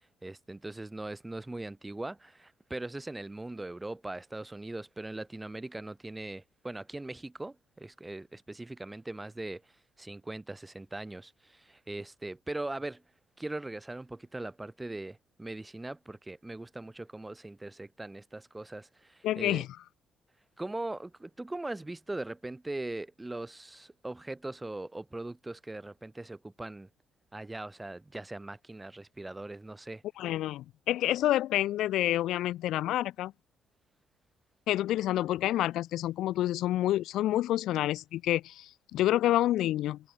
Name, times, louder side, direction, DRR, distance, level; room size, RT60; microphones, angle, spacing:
voice 1, 0.2-9.6 10.0-13.0 13.4-19.6 20.6-26.9 27.3-30.0, right 2 dB, 15° right, 6.1 m, -40 dB
voice 2, 19.2-19.7 30.2-33.3 34.7-40.0, left 14 dB, 80° left, 2.0 m, -28 dB
cardioid pair, 105°, 0 cm